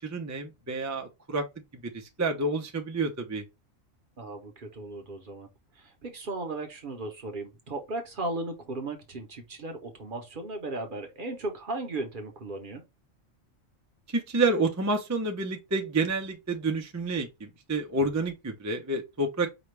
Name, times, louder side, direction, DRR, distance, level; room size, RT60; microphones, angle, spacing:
voice 1, 0.0-1.5 1.7-3.4 14.1-19.5, right 2 dB, 25° right, 0.4 m, -29 dB
voice 2, 4.2-5.5 5.7-12.8, right 2 dB, 45° right, 0.9 m, -36 dB
5.0 x 2.3 x 3.2 m
omnidirectional pair, 1.4 m